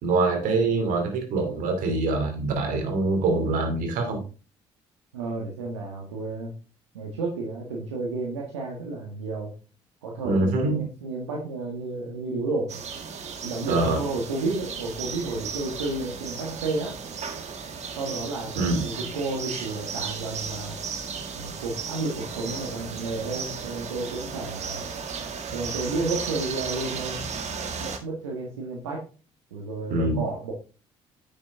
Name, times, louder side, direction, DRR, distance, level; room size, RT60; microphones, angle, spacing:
voice 1, 0.0-4.2 10.2-10.8 13.7-14.0 18.6-18.8 29.9-30.3, right 3 dB, 65° right, 5 dB, 2.6 m, -24 dB
voice 2, 5.1-6.5 6.9-9.5 10.0-12.7 13.4-17.0 18.0-20.8 21.3-24.8 25.5-27.3 27.8-29.0 29.5-30.5, right 3 dB, 90° right, -1 dB, 1.6 m, -31 dB
sound 1, 12.7-28.0, right 5 dB, 50° right, 1.7 m, -35 dB
9.4 x 6.5 x 3.6 m, 0.35 s
hypercardioid pair, 55°, 15 cm